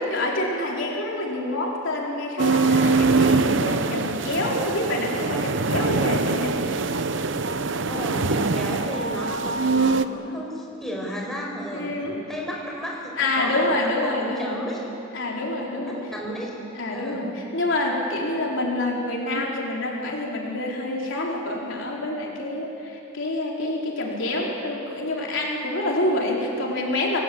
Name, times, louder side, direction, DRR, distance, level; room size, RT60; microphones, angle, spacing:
voice 1, 0.0-6.6 11.7-12.2 13.2-14.5 15.1-16.0 16.8-27.2, left 2 dB, 65° left, -2 dB, 4.2 m, -27 dB
sound 1, 2.4-10.1, right 4 dB, 60° right, 0.8 m, -23 dB
voice 2, 7.8-14.8 15.8-16.5 16.9-17.2, equal, ahead, -3 dB, 5.1 m, -33 dB
27.5 x 19.0 x 8.7 m, 2.9 s
head